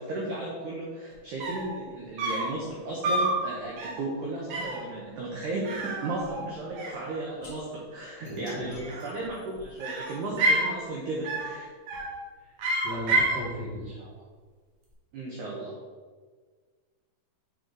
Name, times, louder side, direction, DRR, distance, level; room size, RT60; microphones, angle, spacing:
voice 1, 0.0-11.7 15.1-15.8, right 2 dB, 80° right, -3 dB, 1.8 m, -35 dB
sound 1, 1.1-1.2 1.4-1.7 2.2-2.6 3.0-3.4 3.8-4.1 4.5-4.8 5.6-6.5 6.8-7.5 8.7-9.3 9.8-10.7 11.2-11.6 11.9-12.2 12.6-13.4, right 1 dB, 65° right, 2.3 m, -29 dB
sound 2, 7.4-7.5 8.2-10.4, left 1 dB, 35° left, 1.9 m, -45 dB
voice 2, 8.2-8.7 12.4-12.5 12.8-14.1, left 1 dB, 75° left, -7 dB, 1.4 m, -37 dB
7.5 x 3.8 x 4.8 m, 1.5 s
omnidirectional pair, 4.7 m